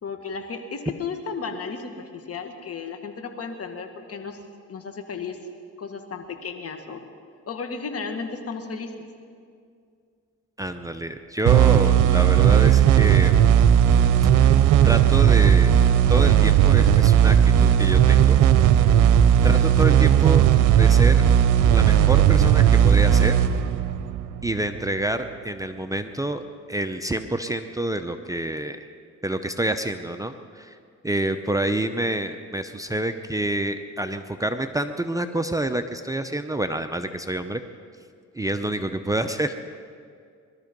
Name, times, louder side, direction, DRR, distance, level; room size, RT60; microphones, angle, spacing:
voice 1, 0.0-4.4 4.7-5.4 5.8-7.0 7.5-8.9, left 5 dB, 50° left, 6 dB, 1.8 m, -34 dB
voice 2, 10.6-13.4 14.3-14.5 14.8-15.7 16.1-18.4 19.4-20.5 20.8-21.2 21.7-23.4 24.4-26.4 26.7-28.8 29.2-30.8 31.0-37.6 38.3-39.5, right 1 dB, 10° right, 8 dB, 0.7 m, -27 dB
sound 1, 11.4-24.8, right 10 dB, 85° right, 0.7 m, -16 dB
21.0 x 12.5 x 5.3 m, 2.3 s
cardioid pair, 90°, 30 cm